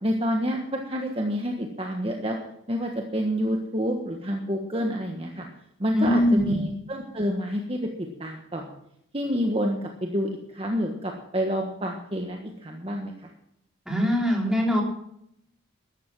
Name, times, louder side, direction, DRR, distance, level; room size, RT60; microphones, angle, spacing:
voice 1, 0.0-2.4 2.7-5.5 5.8-7.9 8.2-8.6 9.1-13.3, equal, 25° right, 2 dB, 1.4 m, -28 dB
voice 2, 5.9-6.6 13.9-14.8, left 1 dB, 5° right, -1 dB, 3.5 m, -22 dB
13.5 x 12.5 x 6.1 m, 0.76 s
head